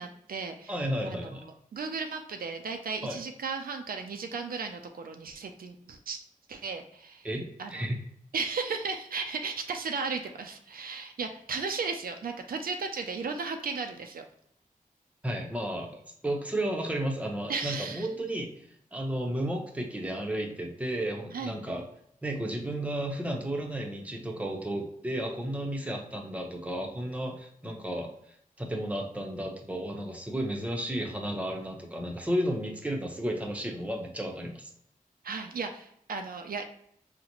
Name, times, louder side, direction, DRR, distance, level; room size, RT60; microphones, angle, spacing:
voice 1, 0.0-0.7 1.1-6.2 6.5-7.3 7.6-7.9 8.3-14.2 17.5-18.1 21.3-21.6 35.2-36.6, right 4 dB, 80° right, 5 dB, 0.4 m, -35 dB
voice 2, 0.7-1.5 3.0-3.2 7.2-8.0 15.2-18.5 18.9-21.8 22.2-28.1 28.6-34.7, right 1 dB, 10° right, 1 dB, 0.7 m, -33 dB
3.9 x 2.1 x 2.9 m, 0.70 s
wide cardioid pair, 65°, 15 cm